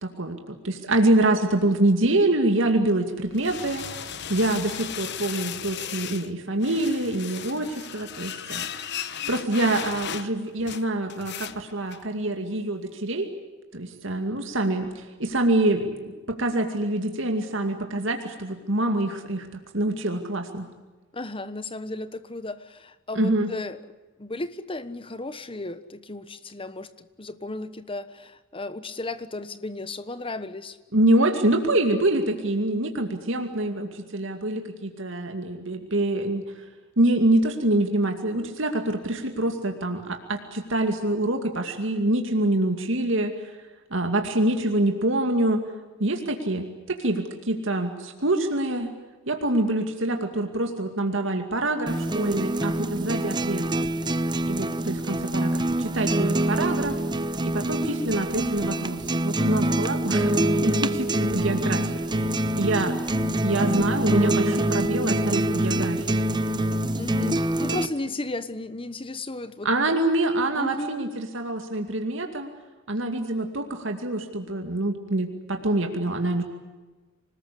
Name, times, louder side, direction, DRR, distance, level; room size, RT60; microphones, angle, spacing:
voice 1, 0.0-3.8 4.3-13.3 13.7-20.7 23.1-23.5 30.9-36.6 37.0-43.5 43.9-45.6 46.0-48.9 49.3-53.8 54.4-57.0 57.4-61.9 62.6-63.0 63.4-66.2 69.6-72.5 72.9-76.4, right 1 dB, 65° right, 4 dB, 2.4 m, -25 dB
sound 1, 3.1-6.3 6.6-12.1, left 9 dB, 55° left, 1.2 m, -36 dB
voice 2, 21.1-23.8 24.2-30.8 66.9-70.0 70.5-71.0, left 2 dB, 25° left, 13 dB, 1.2 m, -34 dB
sound 2, 51.9-67.9, right 1 dB, 20° right, 1.0 m, -25 dB
26.0 x 20.0 x 8.5 m, 1.3 s
head